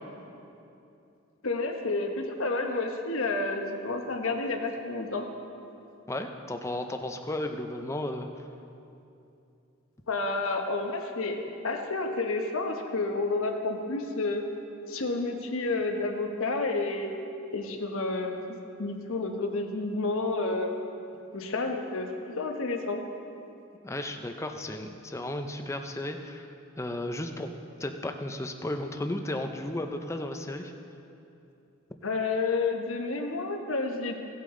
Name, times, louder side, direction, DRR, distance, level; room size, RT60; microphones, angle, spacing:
voice 1, 1.4-5.3 10.1-11.4 11.6-14.4 14.9-17.1 17.5-18.4 18.8-20.8 21.3-23.0 32.0-34.2, left 3 dB, 75° left, 3 dB, 1.1 m, -30 dB
voice 2, 6.1-8.3 23.8-27.5 27.8-30.7, left 1 dB, 15° left, 5 dB, 0.5 m, -34 dB
17.0 x 8.4 x 3.8 m, 2.7 s
head